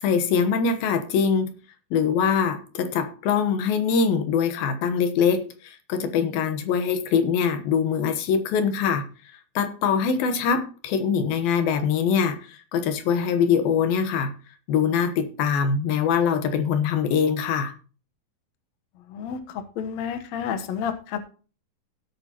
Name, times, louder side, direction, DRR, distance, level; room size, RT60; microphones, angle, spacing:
voice 1, 0.0-1.5 1.9-9.1 9.6-14.3 14.7-17.7, left 6 dB, 85° left, 2.9 m, -23 dB
voice 2, 19.1-21.2, left 7 dB, 65° left, 1.9 m, -30 dB
16.5 x 8.4 x 2.9 m
omnidirectional pair, 4.2 m